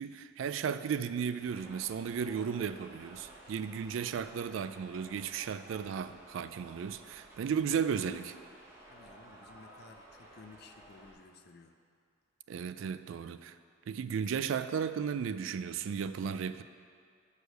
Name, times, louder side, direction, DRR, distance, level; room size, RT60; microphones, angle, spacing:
voice 1, 0.0-8.3 12.5-13.5 13.9-16.6, right 7 dB, 90° right, 12 dB, 0.3 m, -35 dB
sound 1, 1.4-11.1, right 1 dB, 15° right, 1.0 m, -54 dB
voice 2, 8.9-11.8, left 3 dB, 55° left, 6 dB, 0.5 m, -55 dB
6.3 x 4.9 x 6.5 m, 2.2 s
head